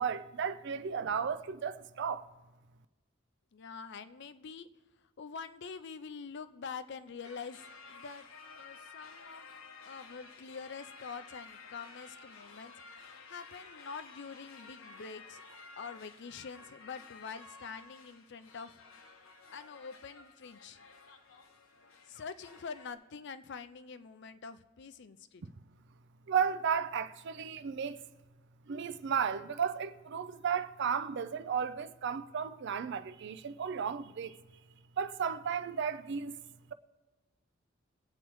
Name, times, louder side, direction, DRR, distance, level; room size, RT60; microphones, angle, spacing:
voice 1, 0.0-2.3 25.4-25.5 26.3-28.0 28.7-34.4 35.0-36.4, right 7 dB, 60° right, 0.4 m, -34 dB
voice 2, 3.5-4.7 5.2-8.3 8.6-9.5 9.9-12.7 13.3-15.4 15.8-18.8 19.5-20.8 22.1-25.4, left 5 dB, 60° left, 0.5 m, -45 dB
sound 1, 7.2-22.9, left 4 dB, 80° left, 1.0 m, -53 dB
22.0 x 8.6 x 3.1 m
head